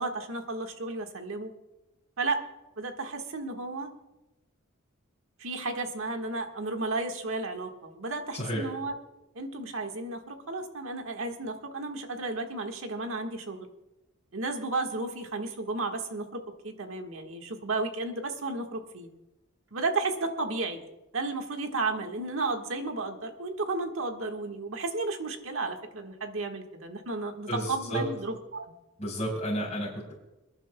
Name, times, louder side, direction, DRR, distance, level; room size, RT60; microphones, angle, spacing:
voice 1, 0.0-1.5 2.2-2.4 2.8-3.9 5.4-8.9 9.3-13.7 14.3-19.1 19.7-20.8 21.1-28.7, right 3 dB, 65° right, 4 dB, 1.5 m, -33 dB
voice 2, 8.3-8.7 27.5-28.0 29.0-30.1, equal, 35° left, -8 dB, 4.6 m, -31 dB
28.5 x 10.5 x 2.2 m, 1.0 s
head